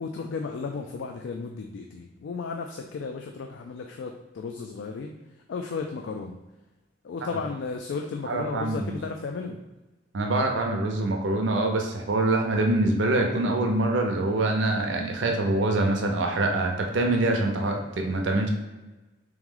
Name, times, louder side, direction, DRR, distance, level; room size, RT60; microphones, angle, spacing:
voice 1, 0.0-5.2 5.5-6.4 7.0-9.6, left 4 dB, 70° left, 3 dB, 0.3 m, -34 dB
voice 2, 8.2-9.0 10.1-18.5, right 2 dB, 70° right, 2 dB, 0.6 m, -25 dB
3.5 x 3.1 x 3.8 m, 1.1 s
head